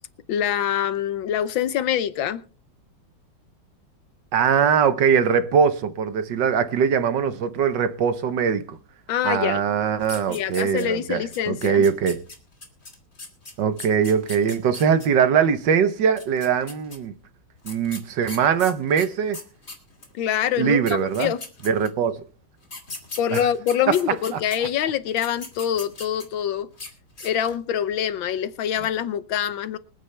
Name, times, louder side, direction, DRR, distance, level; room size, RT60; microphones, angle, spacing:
voice 1, 0.3-2.4 9.1-9.6 10.3-11.8 20.1-21.4 23.2-26.7 27.2-29.8, left 9 dB, 75° left, 1.5 m, -25 dB
voice 2, 4.3-8.8 9.2-12.2 13.6-17.1 17.6-19.4 20.6-21.3 21.6-22.1 23.3-23.5 24.3-24.4, right 7 dB, 65° right, 1.6 m, -21 dB
sound 1, 10.0-11.0 11.3-15.1 16.1-17.0 17.6-20.1 20.6-20.7 20.9-22.1 22.6-24.6 25.1-26.4 26.7-26.9 27.2-27.6, left 3 dB, 30° left, 2.8 m, -39 dB
25.0 x 9.1 x 3.3 m
omnidirectional pair, 2.2 m